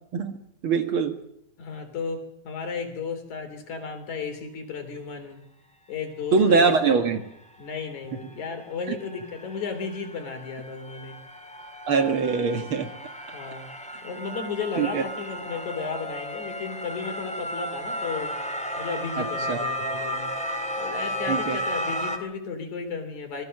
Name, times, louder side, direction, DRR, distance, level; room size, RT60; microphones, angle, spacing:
voice 1, 0.6-1.2 6.3-7.2 11.9-12.9 14.8-15.0 19.2-19.6 21.3-21.6, right 5 dB, 50° right, 7 dB, 2.2 m, -22 dB
voice 2, 1.6-5.4 5.9-7.0 7.6-11.2 13.3-13.7 14.0-18.3 18.8-20.3 20.8-23.5, left 5 dB, 80° left, 6 dB, 4.8 m, -34 dB
sound 1, 7.6-7.7 8.1-22.2, equal, 5° left, 2.0 m, -34 dB
26.0 x 19.5 x 6.6 m, 0.78 s
omnidirectional pair, 3.3 m